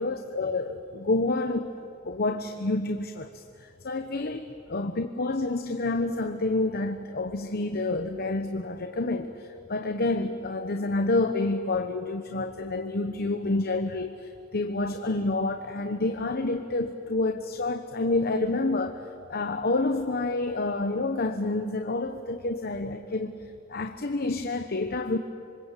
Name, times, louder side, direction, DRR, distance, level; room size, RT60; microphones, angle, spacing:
voice 1, 0.0-1.7 2.0-23.4 23.7-25.2, left 2 dB, 50° left, 6 dB, 1.0 m, -28 dB
26.5 x 24.5 x 8.3 m, 2.6 s
head